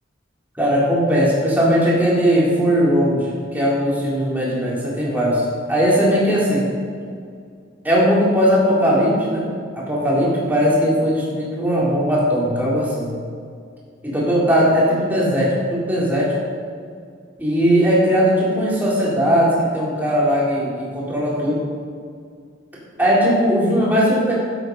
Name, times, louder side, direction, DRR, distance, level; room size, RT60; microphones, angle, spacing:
voice 1, 0.6-6.7 7.8-9.4 9.7-13.2 14.0-16.3 17.4-21.6 23.0-24.3, equal, 10° right, -6 dB, 3.8 m, -18 dB
12.5 x 11.0 x 5.4 m, 2.2 s
head